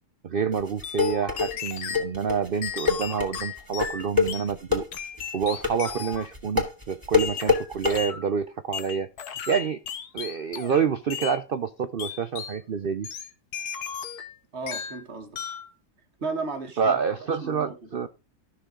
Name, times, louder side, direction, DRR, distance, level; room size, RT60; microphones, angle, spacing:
voice 1, 0.2-4.9 5.3-9.1 9.5-9.8 10.1-13.1 16.8-18.1, right 6 dB, 90° right, 0.4 m, -27 dB
sound 1, 0.5-8.0, left 5 dB, 10° right, 2.5 m, -25 dB
sound 2, 0.8-2.1 2.6-4.5 4.9-6.3 7.2-8.3 8.7-10.8 11.1-11.4 12.0-12.6 13.0-14.3 14.7-15.0 15.3-15.7, left 7 dB, 70° left, 1.5 m, -35 dB
voice 2, 14.5-15.4 16.2-17.0 17.4-17.8, right 3 dB, 40° right, 1.6 m, -34 dB
13.5 x 6.2 x 3.8 m
omnidirectional pair, 1.8 m